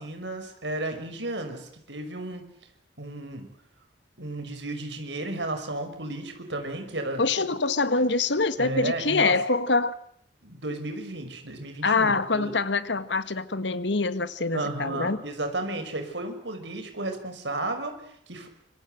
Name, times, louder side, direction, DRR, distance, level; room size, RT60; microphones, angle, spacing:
voice 1, 0.0-2.4 3.0-3.5 4.2-7.2 8.6-9.3 10.4-12.5 14.5-18.5, right 2 dB, 80° right, 5.7 m, -33 dB
voice 2, 7.2-10.0 11.8-15.2, left 3 dB, 80° left, 1.6 m, -25 dB
26.0 x 24.5 x 7.8 m
head